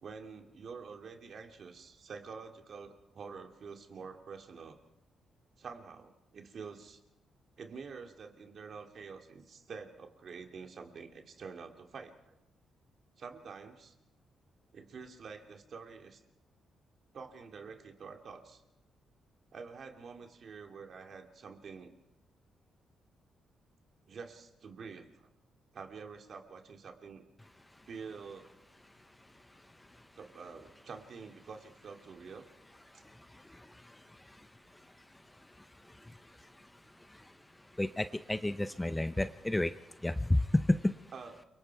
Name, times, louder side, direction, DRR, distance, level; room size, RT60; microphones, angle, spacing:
voice 1, 0.0-4.8 5.6-7.0 7.6-12.3 13.2-13.9 14.7-16.2 17.1-18.6 19.5-21.9 24.1-25.3 25.7-27.2 27.8-28.5 30.2-32.5 32.9-33.0 41.1-41.4, right 5 dB, 55° right, 4 dB, 2.6 m, -47 dB
voice 2, 37.8-39.7 40.0-40.9, left 1 dB, 10° left, 11 dB, 0.7 m, -30 dB
28.5 x 24.0 x 4.7 m, 0.93 s
cardioid pair, 100°, 0 cm